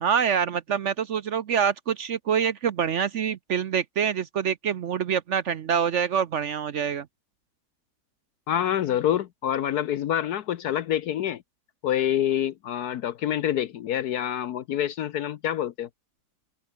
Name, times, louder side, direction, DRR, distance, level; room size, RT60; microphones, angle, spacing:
voice 1, 0.0-7.1, right 7 dB, 60° right, 0.9 m, -26 dB
voice 2, 8.5-11.4 11.8-15.9, left 11 dB, 70° left, 1.3 m, -26 dB
omnidirectional pair, 1.7 m